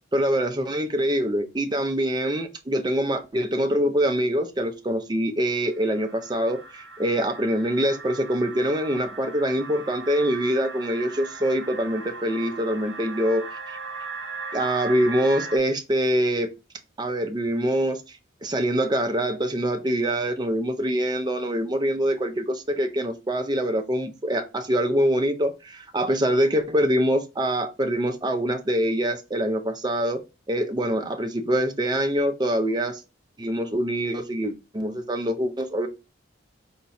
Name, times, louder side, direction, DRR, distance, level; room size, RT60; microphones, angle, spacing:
voice 1, 0.1-13.8 14.5-16.5 17.0-30.2 30.5-33.0 33.4-35.9, equal, 20° right, 0.5 m, -24 dB
sound 1, 5.5-15.6, right 4 dB, 70° right, 1.0 m, -38 dB
4.6 x 2.7 x 4.1 m
head